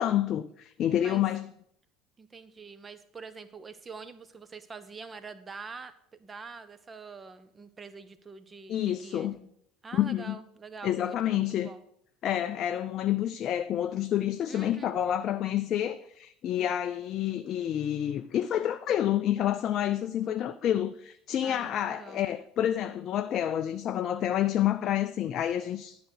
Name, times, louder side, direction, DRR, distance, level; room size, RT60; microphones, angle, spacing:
voice 1, 0.0-1.5 8.7-9.4 9.9-10.4 10.8-11.7 12.2-26.0, left 11 dB, 45° left, 0.4 m, -28 dB
voice 2, 2.2-5.9 6.2-9.3 9.8-11.8 14.5-14.9 21.4-22.3, right 4 dB, 25° right, 0.8 m, -45 dB
11.0 x 5.1 x 6.3 m
figure-of-eight pair, 65°, 0 cm